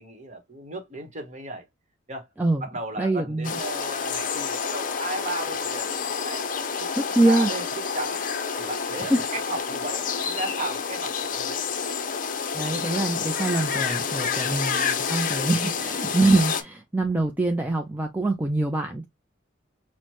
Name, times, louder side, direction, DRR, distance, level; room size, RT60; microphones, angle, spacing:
voice 1, 0.0-1.7 2.1-2.3 2.6-6.9 7.2-8.2 8.6-11.6 14.5-15.0 15.4-15.9, right 2 dB, 35° right, 1.1 m, -35 dB
voice 2, 3.0-3.5 7.0-7.5 9.0-9.3 12.5-19.1, right 2 dB, 10° right, 0.4 m, -24 dB
sound 1, 3.4-16.6, left 6 dB, 45° left, 0.6 m, -29 dB
5.9 x 2.1 x 2.9 m
head